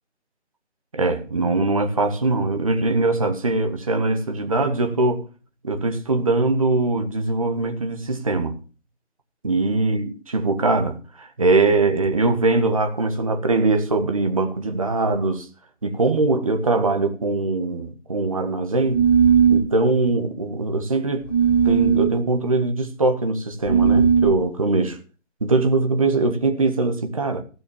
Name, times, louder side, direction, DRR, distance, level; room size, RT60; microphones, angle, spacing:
voice 1, 0.9-5.3 5.6-8.6 9.4-15.5 15.8-19.0 19.5-21.3 21.6-25.0 25.4-27.4, right 3 dB, 30° right, 1.4 m, -22 dB
sound 1, 18.9-19.7 21.3-22.1 23.6-24.4, right 7 dB, 25° left, 6.3 m, -17 dB
15.5 x 6.2 x 7.1 m
figure-of-eight pair, 170°, 35 cm